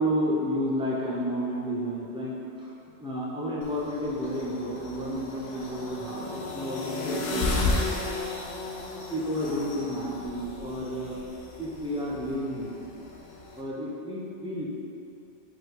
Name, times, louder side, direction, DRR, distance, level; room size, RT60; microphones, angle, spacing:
voice 1, 0.0-2.7 3.0-7.8 9.1-11.2 11.6-12.8 13.6-14.7, equal, 10° right, -7 dB, 0.3 m, -31 dB
sound 1, 3.6-13.6, left 3 dB, 90° left, 0.9 m, -34 dB
5.1 x 2.2 x 4.6 m, 2.7 s
omnidirectional pair, 1.2 m